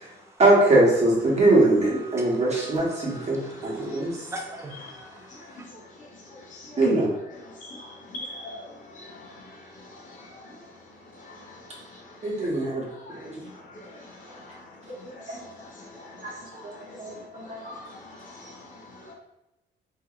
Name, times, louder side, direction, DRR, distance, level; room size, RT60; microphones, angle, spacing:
voice 1, 0.4-4.1 6.8-7.1 12.2-12.8 13.2-13.3 15.3-15.4 16.2-16.3 16.6-17.7, right 2 dB, 35° right, -4 dB, 1.0 m, -22 dB
voice 2, 1.8-5.6, right 1 dB, 15° right, -1 dB, 0.6 m, -43 dB
voice 3, 3.5-4.0 4.7-5.1 6.5-6.7 7.3-8.6 8.9-9.3 10.2-10.3 11.3-11.4 12.4-12.5 13.1-13.2 13.9-14.0 14.3-14.4 15.1-16.1 16.5-16.8 17.6-18.5, left 2 dB, 40° left, -5 dB, 0.7 m, -43 dB
2.8 x 2.5 x 2.4 m, 0.95 s
cardioid pair, 90°, 20 cm